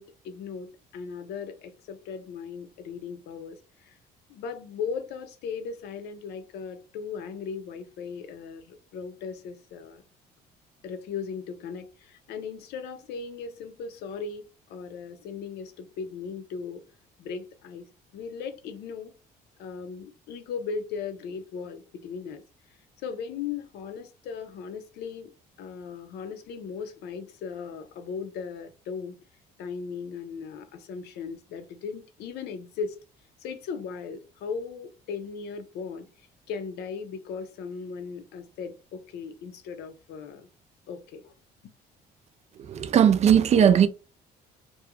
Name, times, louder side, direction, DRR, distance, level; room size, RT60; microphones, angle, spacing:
voice 1, 0.0-3.6 3.9-4.0 4.3-10.0 10.8-16.8 17.2-17.9 18.1-19.1 19.6-22.4 23.0-25.3 25.6-29.2 29.6-32.9 33.4-36.1 36.5-40.5 40.9-41.3, left 5 dB, 75° left, 0.5 m, -37 dB
voice 2, 42.6-43.9, right 8 dB, 40° right, 0.4 m, -18 dB
2.3 x 2.2 x 2.9 m
cardioid pair, 110°, 17 cm